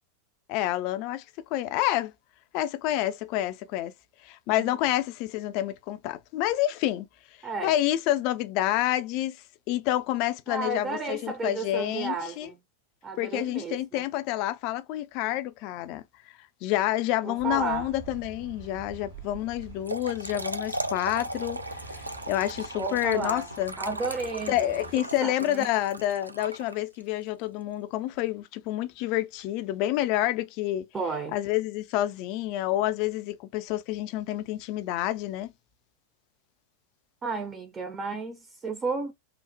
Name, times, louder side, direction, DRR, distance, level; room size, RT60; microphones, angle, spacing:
voice 1, 0.5-1.2 1.5-2.1 2.5-3.9 4.2-7.1 7.6-9.4 9.7-12.5 13.2-16.0 16.6-21.6 21.9-22.0 22.3-23.7 24.5-30.9 31.3-35.5, left 14 dB, 45° left, 0.3 m, -28 dB
voice 2, 7.4-7.7 10.5-12.6 13.0-14.0 17.2-17.9 22.8-23.5 23.8-25.7 30.9-31.4 37.2-39.1, right 4 dB, 20° right, 0.4 m, -33 dB
sound 1, 17.4-25.0, right 3 dB, 70° right, 1.0 m, -47 dB
Trickle dribble / Fill (with liquid), 19.6-27.1, right 1 dB, 85° right, 0.3 m, -37 dB
3.0 x 2.0 x 2.5 m
figure-of-eight pair, 90°, 0 cm